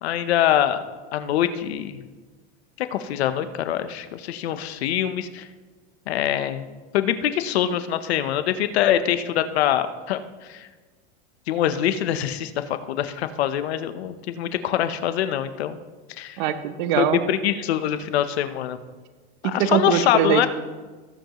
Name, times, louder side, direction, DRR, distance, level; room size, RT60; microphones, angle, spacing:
voice 1, 0.0-0.8 1.1-2.0 2.8-5.5 6.1-6.6 6.9-10.7 11.5-15.8 16.2-16.4 17.0-18.8 19.4-20.5, left 11 dB, 90° left, 11 dB, 0.9 m, -24 dB
voice 2, 16.4-17.2 19.4-20.5, right 9 dB, 50° right, 10 dB, 0.8 m, -22 dB
18.0 x 7.9 x 3.0 m, 1.3 s
supercardioid pair, 170°, 31 cm